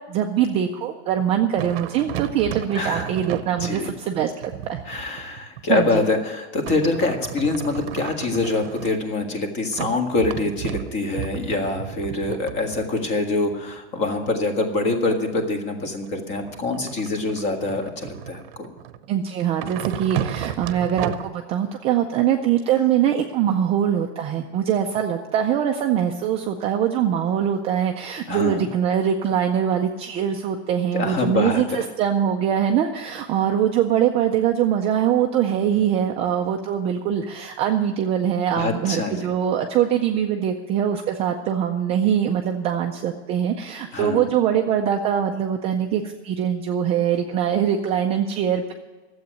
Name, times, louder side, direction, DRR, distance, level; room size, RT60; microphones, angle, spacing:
voice 1, 0.1-4.8 5.7-5.9 12.3-12.4 19.1-48.7, right 9 dB, 20° right, 3 dB, 0.4 m, -23 dB
sound 1, 1.6-6.0 6.6-9.3 9.7-14.3 16.0-19.1 19.6-21.3, right 11 dB, 55° right, 0.8 m, -33 dB
voice 2, 2.7-3.1 3.6-3.9 4.9-18.7 28.3-28.7 30.9-31.8 38.6-39.3 43.9-44.3, left 3 dB, 35° left, 4 dB, 1.8 m, -25 dB
12.5 x 8.0 x 9.1 m, 1.2 s
supercardioid pair, 160°, 34 cm